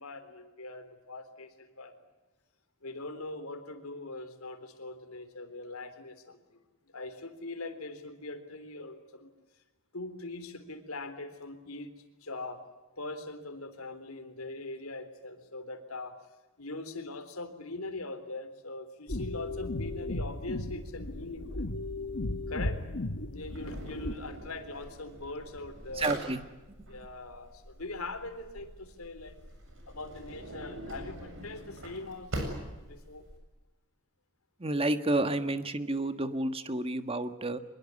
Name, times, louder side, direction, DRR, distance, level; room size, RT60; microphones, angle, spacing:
voice 1, 0.0-1.9 2.8-6.6 6.9-9.3 9.9-11.9 12.2-12.6 13.0-16.2 16.6-21.7 22.5-22.8 23.3-26.2 26.9-29.4 29.9-32.5 32.8-33.2, left 2 dB, 85° left, 9 dB, 3.7 m, -41 dB
sound 1, 19.1-24.1, left 2 dB, 60° left, 1.3 m, -35 dB
Drawer open or close, 23.4-33.4, right 1 dB, 65° right, 7.5 m, -43 dB
voice 2, 25.9-26.4 34.6-37.6, right 2 dB, 25° right, 10 dB, 1.5 m, -30 dB
24.5 x 22.0 x 9.8 m, 1.1 s
head